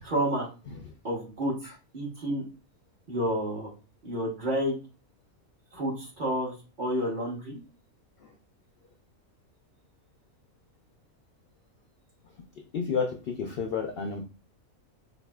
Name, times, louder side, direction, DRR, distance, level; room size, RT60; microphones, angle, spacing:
voice 1, 0.0-0.5 1.0-1.5 1.9-2.4 3.1-3.7 4.0-4.8 5.7-7.6, equal, 40° right, -4 dB, 1.4 m, -30 dB
voice 2, 12.7-14.2, left 5 dB, 65° left, 3 dB, 0.6 m, -30 dB
4.5 x 2.6 x 2.2 m, 0.32 s
omnidirectional pair, 1.4 m